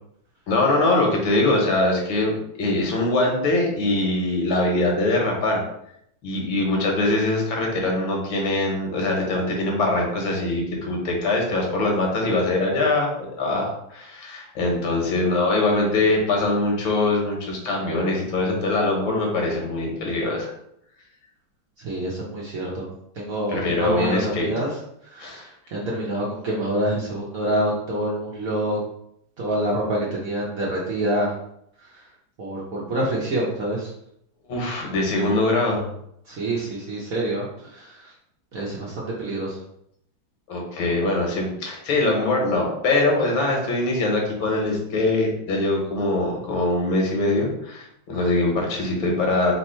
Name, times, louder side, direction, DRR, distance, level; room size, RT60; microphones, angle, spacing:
voice 1, 0.5-5.6 6.2-20.5 23.5-24.5 25.2-25.4 34.5-35.9 40.5-49.5, left 2 dB, 75° left, 0 dB, 1.8 m, -23 dB
voice 2, 21.8-22.9 23.2-24.7 25.1-28.8 29.4-31.3 32.4-33.9 36.3-38.1 38.5-39.6, right 1 dB, 55° right, -4 dB, 1.0 m, -26 dB
3.7 x 2.9 x 4.3 m, 0.75 s
omnidirectional pair, 2.2 m